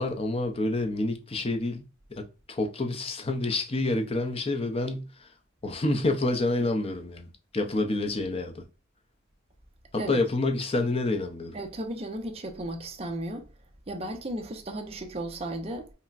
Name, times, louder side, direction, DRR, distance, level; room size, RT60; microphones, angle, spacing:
voice 1, 0.0-5.3 5.6-8.6 10.1-11.6, left 2 dB, 25° left, 0.5 m, -28 dB
voice 2, 11.5-13.5 13.9-15.9, right 1 dB, 30° right, 0.6 m, -35 dB
5.6 x 2.1 x 2.4 m
head